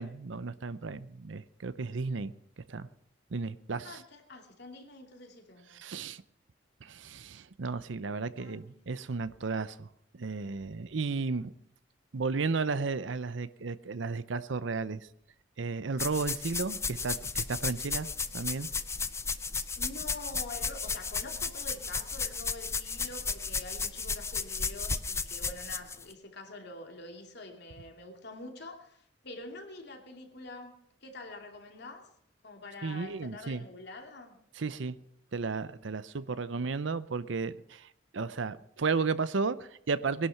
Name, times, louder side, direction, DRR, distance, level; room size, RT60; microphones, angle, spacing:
voice 1, 0.0-2.3 2.7-2.9 3.3-4.0 5.7-6.2 6.8-9.9 10.1-11.5 12.1-15.0 15.6-18.1 18.3-18.7 32.8-33.6 34.6-35.0 35.3-37.9 38.1-40.3, right 4 dB, 70° right, 15 dB, 0.6 m, -33 dB
voice 2, 3.8-5.8 8.4-8.7 19.8-30.7 31.0-32.1 32.4-34.4, left 2 dB, 60° left, 3 dB, 2.8 m, -46 dB
sound 1, 16.0-26.0, left 4 dB, 15° left, 0.6 m, -34 dB
21.0 x 11.5 x 5.8 m, 0.73 s
head